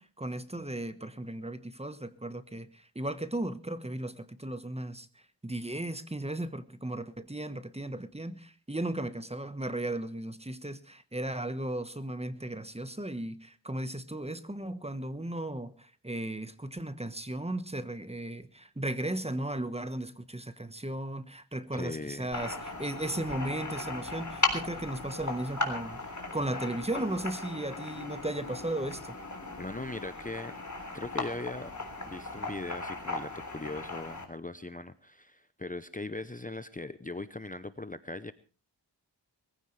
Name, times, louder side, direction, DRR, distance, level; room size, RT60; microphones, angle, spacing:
voice 1, 0.0-29.2, right 1 dB, 15° right, 1.2 m, -36 dB
voice 2, 21.7-22.3 29.6-30.5 30.9-31.7 32.0-38.3, left 2 dB, 20° left, 0.7 m, -39 dB
sound 1, 22.3-34.2, left 3 dB, 45° left, 3.5 m, -37 dB
22.0 x 15.5 x 3.3 m
wide cardioid pair, 80°, 42 cm